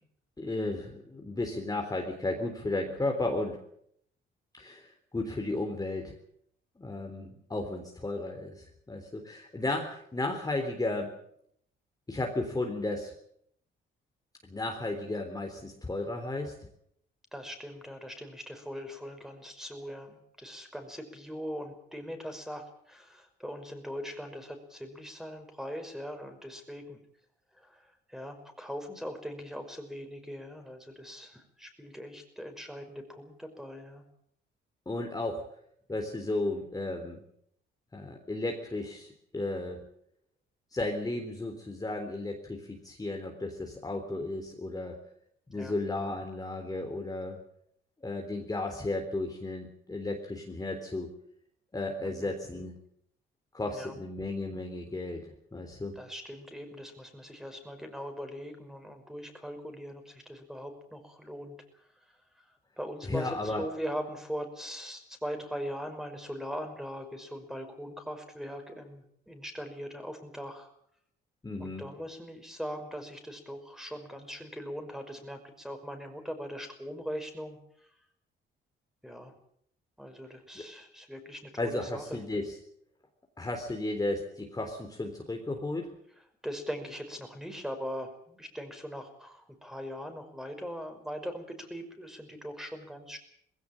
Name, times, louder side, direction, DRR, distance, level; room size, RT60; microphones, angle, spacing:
voice 1, 0.4-3.6 4.6-4.9 5.1-6.1 6.8-11.1 12.1-13.1 14.4-16.5 34.9-35.4 35.9-37.2 37.9-39.8 40.7-45.0 45.5-47.4 48.0-51.1 51.7-52.7 53.5-55.9 63.1-63.6 71.4-71.8 80.6-80.7 81.6-82.5 83.4-85.9, left 2 dB, 20° left, 3 dB, 3.7 m, -34 dB
voice 2, 17.3-27.0 27.5-34.0 45.5-45.7 52.0-52.3 53.6-53.9 56.0-61.6 62.1-62.2 62.8-70.7 71.6-77.9 79.0-79.3 80.0-82.2 86.4-93.2, equal, ahead, 6 dB, 5.6 m, -40 dB
20.0 x 17.0 x 8.7 m, 0.69 s
cardioid pair, 90°, 20 cm